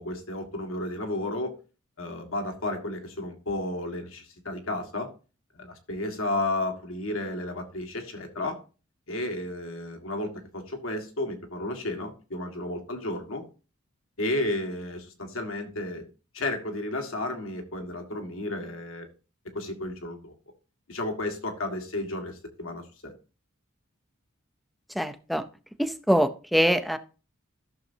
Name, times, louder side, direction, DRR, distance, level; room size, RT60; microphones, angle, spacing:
voice 1, 0.0-1.6 2.0-5.1 5.5-8.6 9.1-13.4 14.2-16.0 16.3-19.1 19.5-20.3 20.9-23.1, left 1 dB, 80° left, 4 dB, 1.7 m, -32 dB
voice 2, 24.9-25.4 25.8-27.0, equal, ahead, 10 dB, 0.5 m, -24 dB
14.0 x 6.6 x 2.7 m, 0.35 s
head